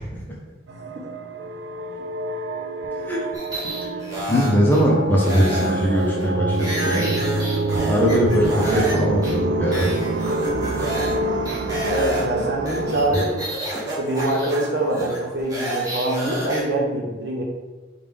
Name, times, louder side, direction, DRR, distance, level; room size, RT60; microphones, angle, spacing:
sound 1, 0.7-13.2, right 2 dB, 85° right, 0.4 m, -26 dB
voice 1, 2.9-3.2 4.3-7.1 7.9-9.9, equal, 10° left, -4 dB, 0.7 m, -20 dB
sound 2, 3.3-4.8 5.2-8.9 9.2-9.3 9.7-11.2 11.4-16.6, right 1 dB, 20° right, 1.0 m, -30 dB
voice 2, 11.8-13.5 14.0-17.4, right 1 dB, 70° right, -2 dB, 1.1 m, -24 dB
5.0 x 2.5 x 3.5 m, 1.2 s
head